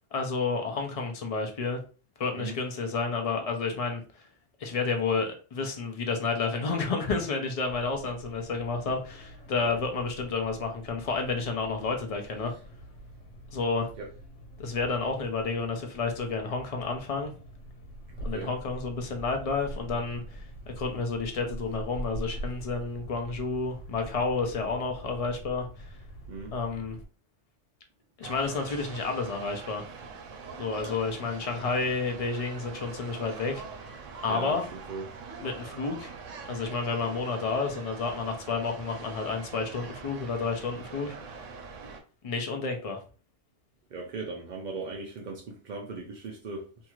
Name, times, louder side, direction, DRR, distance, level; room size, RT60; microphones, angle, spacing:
voice 1, 0.1-1.8 2.2-4.2 4.6-12.5 13.5-13.9 14.6-17.3 18.2-26.0 26.5-27.0 28.2-29.9 30.6-33.6 34.2-34.7 35.4-36.1 36.5-41.4 42.2-43.0, left 4 dB, 50° left, 0.4 m, -30 dB
sound 1, 7.6-27.0, right 1 dB, 80° left, 1.2 m, -44 dB
voice 2, 18.1-18.5 26.3-26.5 34.2-34.6 34.9-35.0 43.9-46.7, right 3 dB, 60° right, 0.4 m, -38 dB
sound 2, 28.2-42.0, right 5 dB, 80° right, 1.0 m, -43 dB
2.7 x 2.3 x 2.9 m
omnidirectional pair, 1.3 m